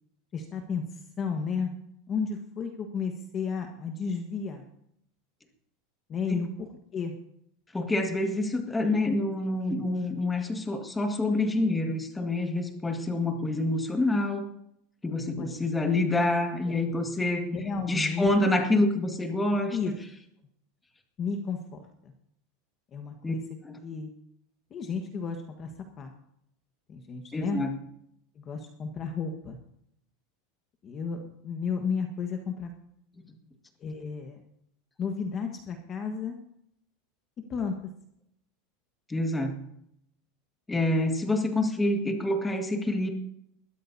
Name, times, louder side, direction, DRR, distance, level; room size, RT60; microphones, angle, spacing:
voice 1, 0.3-1.7 2.1-4.7 6.1-7.1 15.4-15.5 16.6-16.7 17.5-18.3 19.7-19.9 21.2-22.1 22.9-23.4 23.8-24.1 24.7-25.7 26.0-26.1 26.9-27.6 28.3-29.6 30.8-32.7 33.8-34.4 35.0-36.4 37.5-37.9, left 5 dB, 30° left, 4 dB, 1.4 m, -33 dB
voice 2, 7.7-14.5 15.0-17.5 17.9-20.0 23.2-23.3 23.6-23.8 27.3-27.7 39.1-39.7 40.7-43.1, left 2 dB, 10° left, 4 dB, 1.9 m, -27 dB
21.5 x 14.0 x 2.8 m, 0.72 s
supercardioid pair, 155°, 0 cm